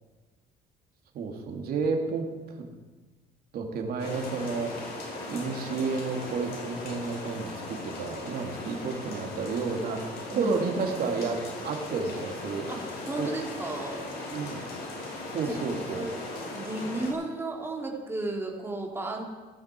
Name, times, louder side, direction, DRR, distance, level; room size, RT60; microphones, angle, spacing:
voice 1, 1.1-2.3 3.5-4.7 5.3-10.0 10.3-12.7 13.2-13.3 14.3-14.7 15.3-16.1, right 4 dB, 65° right, 2 dB, 2.8 m, -31 dB
sound 1, 4.0-17.1, left 2 dB, 70° left, 5.3 m, -38 dB
voice 2, 13.1-14.1 15.5-15.6 15.9-16.1 16.5-19.3, right 2 dB, 15° right, -1 dB, 3.5 m, -33 dB
17.0 x 14.0 x 4.7 m, 1.3 s
cardioid pair, 110°, 17 cm